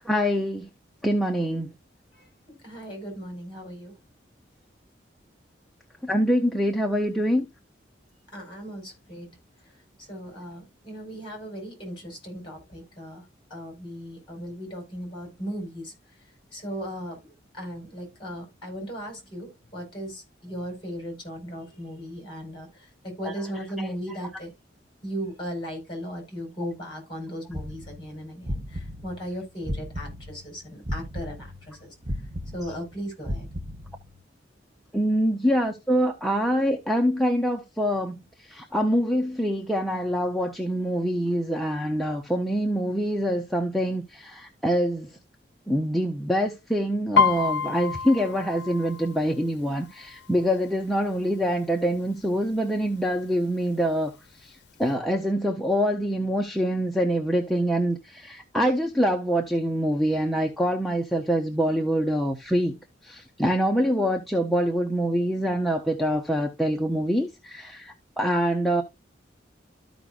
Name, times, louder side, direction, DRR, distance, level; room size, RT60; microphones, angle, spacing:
voice 1, 0.0-0.7 1.0-1.7 6.0-7.5 23.2-23.3 23.8-23.9 34.9-45.1 45.7-54.1 54.4-68.8, equal, ahead, 0.7 m, -25 dB
voice 2, 2.1-3.9 8.3-9.4 9.6-9.7 10.0-15.9 16.5-24.5 25.0-31.9 32.5-33.5, equal, 25° left, 4.5 m, -37 dB
sound 1, 27.5-30.5 30.8-34.2, equal, 25° right, 0.9 m, -34 dB
Piano, 47.2-50.8 51.2-51.6 51.9-52.5 53.1-53.2 53.5-54.5 54.9-55.0, left 5 dB, 70° left, 0.6 m, -27 dB
13.5 x 5.2 x 2.4 m
head